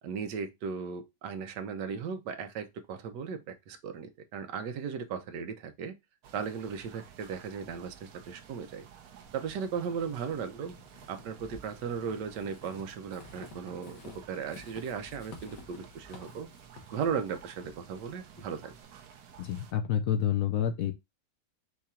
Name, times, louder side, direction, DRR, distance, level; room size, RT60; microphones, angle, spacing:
voice 1, 0.0-6.0 6.3-8.9 9.3-10.8 11.1-14.0 14.3-16.5 16.9-18.8, right 6 dB, 90° right, 1.4 m, -36 dB
sound 1, 6.2-19.7, right 8 dB, 70° right, 1.1 m, -53 dB
Walk footsteps / Squeak, 9.2-18.8, left 3 dB, 85° left, 1.7 m, -52 dB
voice 2, 19.4-20.9, left 9 dB, 65° left, 0.9 m, -28 dB
4.8 x 2.4 x 4.1 m
omnidirectional pair, 1.8 m